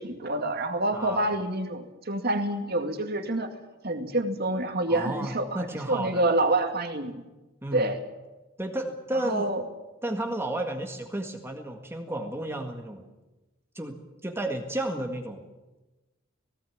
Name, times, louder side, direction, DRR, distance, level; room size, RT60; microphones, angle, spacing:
voice 1, 0.0-3.5 3.8-7.2 7.7-8.0 9.2-9.6, right 2 dB, 50° right, 6 dB, 2.3 m, -27 dB
voice 2, 0.9-1.3 4.9-6.3 7.6-7.9 8.6-9.5 10.0-13.0 13.8-14.0 14.2-15.4, right 1 dB, 10° right, 2 dB, 1.8 m, -32 dB
18.5 x 17.5 x 8.6 m, 1.1 s
head